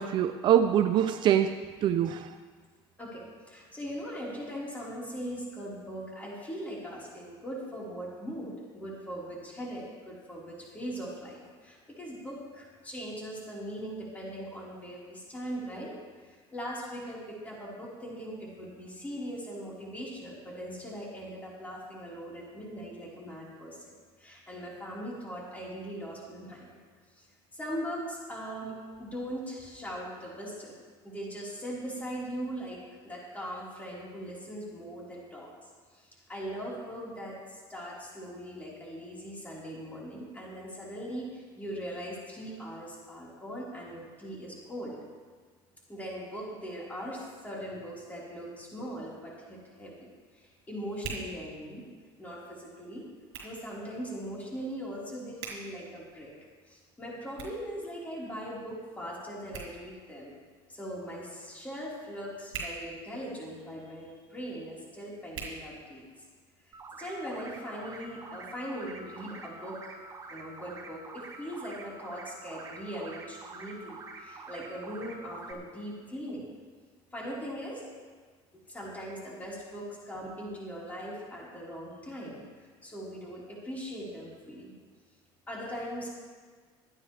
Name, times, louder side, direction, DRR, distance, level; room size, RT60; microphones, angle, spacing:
voice 1, 0.0-2.3, right 10 dB, 45° right, 9 dB, 0.5 m, -24 dB
voice 2, 3.0-15.9 16.2-26.8 27.2-27.3 27.5-30.8 31.0-35.5 35.9-45.0 45.9-50.1 50.3-51.8 52.2-53.1 53.4-56.3 56.7-60.3 60.7-66.0 66.9-70.0 70.3-76.5 77.1-77.8 78.7-84.7 85.5-86.1, equal, 15° left, -6 dB, 4.3 m, -40 dB
Hands, 48.8-66.4, right 5 dB, 70° right, 4.2 m, -48 dB
sound 1, 66.7-75.5, right 3 dB, 30° right, 1.5 m, -46 dB
24.5 x 9.4 x 3.4 m, 1.5 s
cardioid pair, 135°, 11 cm